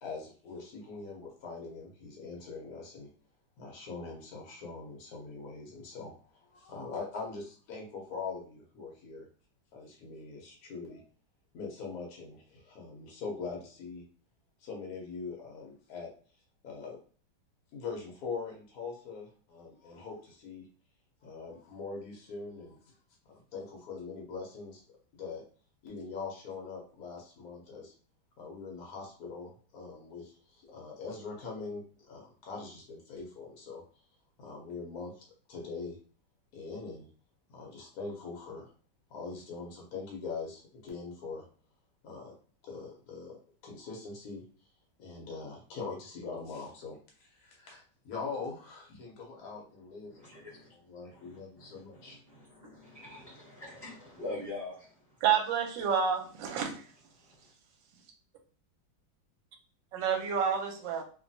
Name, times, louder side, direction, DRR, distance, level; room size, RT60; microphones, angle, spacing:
voice 1, 0.0-3.1 3.6-6.1 6.5-9.3 9.7-11.0 11.5-14.0 14.6-16.1 16.6-17.0 17.7-20.7 21.2-22.8 23.3-24.8 25.1-25.4 25.8-27.9 28.4-33.8 34.4-36.0 36.5-37.1 37.5-38.7 39.1-41.4 42.0-42.3 42.6-44.4 45.0-50.1 50.9-52.2, left 4 dB, 65° left, 1.0 m, -42 dB
voice 2, 50.1-50.7 51.1-55.2 57.1-57.5, left 2 dB, 15° right, 0.9 m, -45 dB
voice 3, 55.2-56.8 59.9-61.0, right 7 dB, 75° right, 1.2 m, -29 dB
3.1 x 2.2 x 2.6 m
omnidirectional pair, 2.2 m